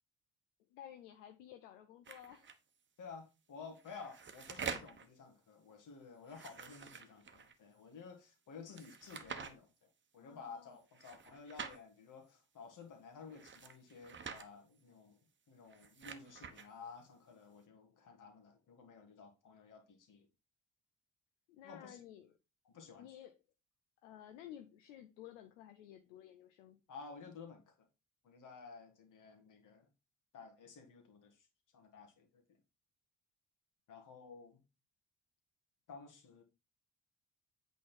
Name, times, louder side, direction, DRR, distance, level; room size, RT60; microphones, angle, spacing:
voice 1, 0.7-2.5 10.2-10.8 21.5-22.3 23.0-23.3 24.0-26.8, left 11 dB, 75° left, 0.7 m, -54 dB
sound 1, 2.1-2.6 3.7-5.1 6.2-7.5 8.7-9.5 10.9-11.8 13.3-14.5 15.6-16.7, right 6 dB, 30° right, 1.1 m, -47 dB
voice 2, 3.0-15.2 15.5-20.3 21.6-22.0 22.7-23.1 26.9-27.7 28.2-29.9 30.3-31.5 31.7-32.4 33.9-34.6 35.9-36.4, left 5 dB, 55° left, 2.0 m, -53 dB
8.2 x 4.1 x 4.4 m
figure-of-eight pair, 45°, 38 cm